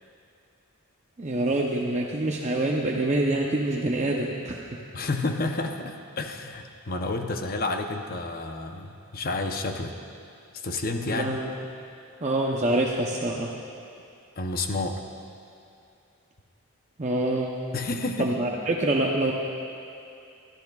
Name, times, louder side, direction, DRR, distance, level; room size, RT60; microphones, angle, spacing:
voice 1, 1.2-4.8 11.1-11.5 12.2-13.5 17.0-17.5 18.2-19.3, right 2 dB, 30° right, -1 dB, 0.7 m, -26 dB
voice 2, 4.9-9.9 10.5-11.4 14.4-15.0 17.7-18.3, left 2 dB, 40° left, 5 dB, 0.7 m, -30 dB
22.5 x 13.5 x 2.4 m, 2.6 s
head